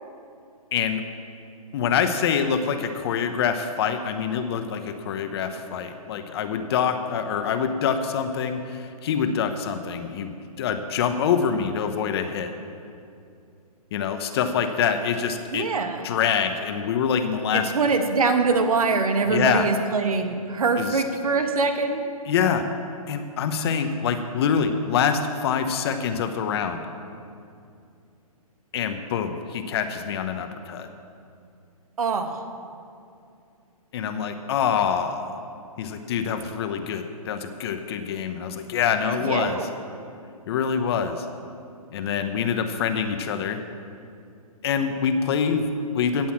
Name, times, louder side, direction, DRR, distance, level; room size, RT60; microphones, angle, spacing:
voice 1, 0.7-1.0 1.7-12.5 13.9-15.7 16.0-17.7 19.2-19.7 20.8-21.0 22.3-22.6 23.1-26.8 28.7-30.9 33.9-35.4 35.8-39.6 40.5-41.3 41.9-43.6 44.6-46.3, left 7 dB, 40° left, 8 dB, 1.0 m, -25 dB
voice 2, 15.5-16.1 17.5-22.0 32.0-32.4 39.1-39.7, right 4 dB, 70° right, 6 dB, 1.5 m, -23 dB
16.0 x 5.6 x 7.5 m, 2.5 s
hypercardioid pair, 135°, 19 cm